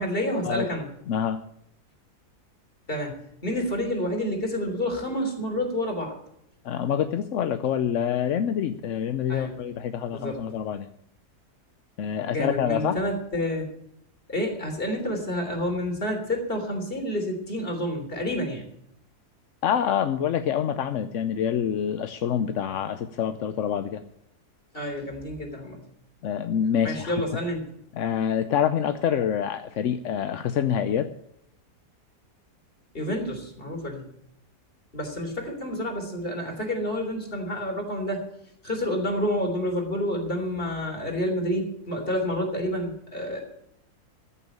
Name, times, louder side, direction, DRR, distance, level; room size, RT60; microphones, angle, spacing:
voice 1, 0.0-0.9 2.9-6.1 9.3-9.6 10.1-10.4 12.3-13.7 14.3-18.7 24.7-25.8 26.8-27.7 32.9-34.0 34.9-38.2 38.6-43.4, equal, 35° left, 3 dB, 3.5 m, -29 dB
voice 2, 1.1-1.4 6.6-10.9 12.0-13.0 19.6-24.0 26.2-27.2 27.9-31.1, left 8 dB, 60° left, 9 dB, 0.9 m, -26 dB
14.5 x 7.0 x 8.8 m, 0.74 s
omnidirectional pair, 1.7 m